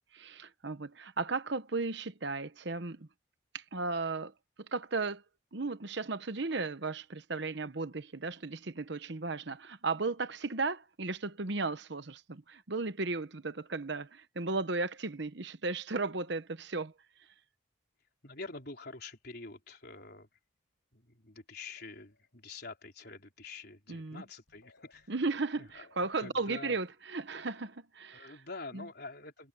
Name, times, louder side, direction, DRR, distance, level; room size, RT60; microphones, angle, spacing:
voice 1, 0.1-3.1 3.5-4.3 4.6-5.2 5.5-16.9 23.9-24.2 25.1-28.3 28.7-28.8, right 3 dB, 55° right, 1.0 m, -35 dB
voice 2, 18.2-20.3 20.9-25.1 25.6-25.9 26.2-26.8 28.1-29.5, left 3 dB, 50° left, 4.4 m, -46 dB
sound 1, 21.8-22.6 24.2-24.3 24.5-27.5, left 2 dB, 75° left, 7.6 m, -68 dB
head